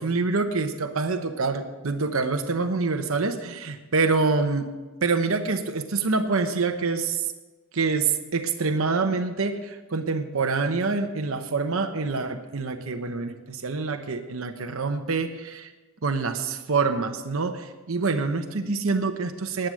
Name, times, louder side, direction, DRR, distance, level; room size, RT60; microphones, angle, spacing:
voice 1, 0.0-4.7 5.0-7.3 7.7-15.7 16.0-19.7, right 4 dB, 70° right, 6 dB, 0.9 m, -26 dB
11.0 x 9.0 x 6.3 m, 1.2 s
head